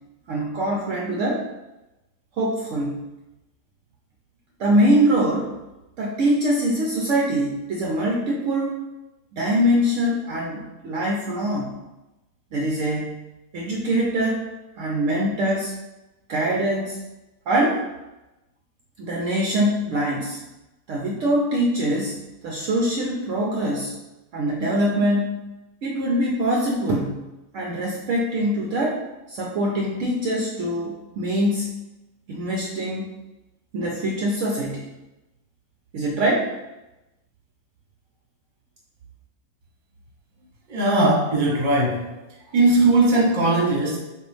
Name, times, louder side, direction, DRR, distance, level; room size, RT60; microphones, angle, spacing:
voice 1, 0.3-1.4 2.4-3.0 4.6-5.6 6.0-8.8 9.3-11.7 12.5-13.1 13.5-14.5 14.8-15.7 16.3-17.0 17.5-17.8 19.0-20.4 20.9-23.9 24.3-25.4 25.8-27.2 27.5-29.0 29.3-31.7 32.3-33.1 33.7-34.9 35.9-36.5, right 1 dB, 75° right, -1 dB, 0.7 m, -23 dB
voice 2, 40.7-42.1 42.5-44.0, right 2 dB, 35° right, -2 dB, 0.9 m, -19 dB
6.5 x 2.4 x 3.3 m, 1.0 s
omnidirectional pair, 1.9 m